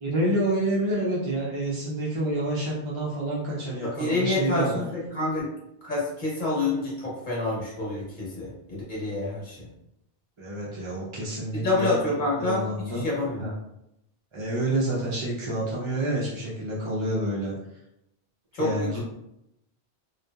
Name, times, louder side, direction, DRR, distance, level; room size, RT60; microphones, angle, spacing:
voice 1, 0.0-4.9 10.4-12.1 12.4-13.0 13.4-13.5 14.3-17.5 18.6-19.0, right 1 dB, 40° right, -6 dB, 0.5 m, -28 dB
voice 2, 3.8-5.5 5.8-9.7 11.6-12.7 12.9-13.4 18.5-19.0, left 2 dB, 50° left, -4 dB, 1.0 m, -28 dB
2.7 x 2.2 x 2.3 m, 0.82 s
omnidirectional pair, 1.1 m